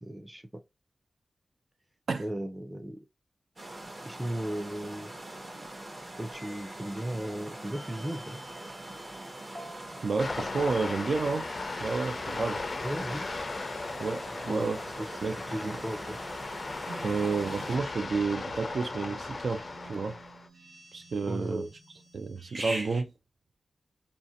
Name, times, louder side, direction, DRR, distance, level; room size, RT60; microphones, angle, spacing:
voice 1, 0.0-0.6 2.2-3.0 4.0-5.1 6.2-8.4 12.8-13.3 14.5-15.1 15.5-16.2 21.3-21.7, right 1 dB, 15° right, 0.5 m, -36 dB
sound 1, 3.6-17.8, right 1 dB, 35° right, 0.8 m, -44 dB
sound 2, 6.3-23.0, right 1 dB, 55° right, 1.3 m, -48 dB
voice 2, 10.0-11.5 11.8-12.6 14.0-14.8 15.2-15.4 15.6-15.8 17.0-20.2 20.9-21.6 22.1-23.1, right 4 dB, 75° right, 0.3 m, -30 dB
sound 3, 10.2-20.5, left 3 dB, 50° left, 0.3 m, -37 dB
2.5 x 2.1 x 2.6 m
wide cardioid pair, 75°, 0 cm